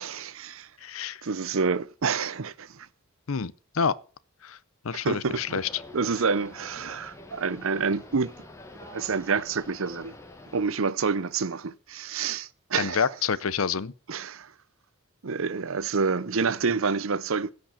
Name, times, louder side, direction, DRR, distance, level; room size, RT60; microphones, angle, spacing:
voice 1, 0.0-0.7 1.2-2.9 4.9-5.6 5.9-8.3 8.9-10.1 10.5-13.0 14.1-14.5 15.2-17.5, right 5 dB, 65° right, 0.7 m, -28 dB
voice 2, 0.8-1.2 3.3-4.0 4.4-4.6 4.8-5.7 12.8-13.9, left 6 dB, 70° left, 0.7 m, -28 dB
sound 1, 5.2-10.6, left 2 dB, 15° left, 1.6 m, -46 dB
15.5 x 5.3 x 8.5 m
head